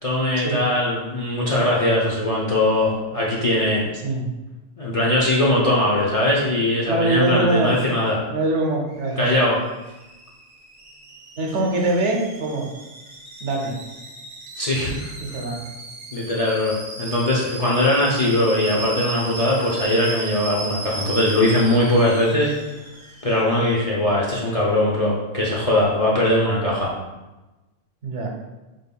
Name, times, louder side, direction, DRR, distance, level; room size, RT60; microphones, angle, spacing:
voice 1, 0.0-3.8 4.8-8.2 9.2-9.6 14.6-15.1 16.1-22.5 23.2-26.9, left 1 dB, 40° left, -5 dB, 0.5 m, -20 dB
voice 2, 6.9-7.7 8.3-9.3 11.4-12.7 13.4-13.8 15.2-15.6 28.0-28.3, right 2 dB, 70° right, 1 dB, 1.0 m, -23 dB
Alarm / Boiling, 8.9-23.7, right 3 dB, 40° right, 0.7 m, -37 dB
5.2 x 3.6 x 2.2 m, 1.1 s
omnidirectional pair, 1.3 m